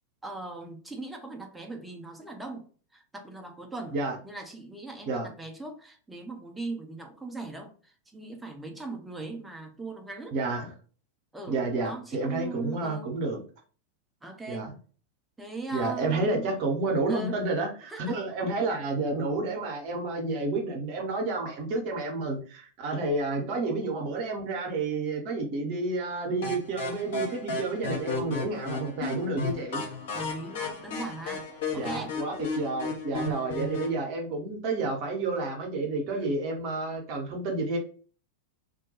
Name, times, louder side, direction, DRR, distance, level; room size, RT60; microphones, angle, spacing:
voice 1, 0.2-4.0 4.2-10.4 11.3-13.1 14.2-14.7 15.4-16.7 17.1-17.4 17.9-18.2 30.1-31.5 31.7-32.2 36.1-36.4, right 3 dB, 5° right, 3 dB, 0.5 m, -40 dB
voice 2, 10.3-10.7 11.5-13.4 14.5-14.7 15.7-29.8 31.8-37.8, right 3 dB, 45° right, 2 dB, 0.8 m, -30 dB
sound 1, 26.4-34.0, left 3 dB, 55° left, 0.7 m, -34 dB
2.3 x 2.1 x 2.8 m, 0.41 s
figure-of-eight pair, 90°, 0 cm